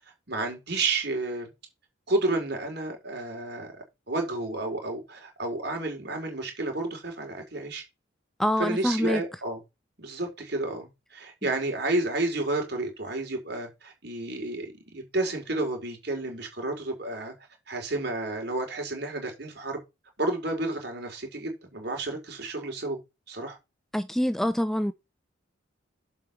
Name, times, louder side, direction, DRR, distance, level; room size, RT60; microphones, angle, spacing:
voice 1, 0.3-1.5 2.1-3.7 4.1-7.8 8.6-9.6 10.0-17.3 17.7-19.8 20.2-23.0 23.3-23.6, right 2 dB, 55° right, 4.3 m, -31 dB
voice 2, 8.4-9.2 23.9-24.9, equal, ahead, 0.4 m, -25 dB
7.6 x 5.7 x 7.0 m
head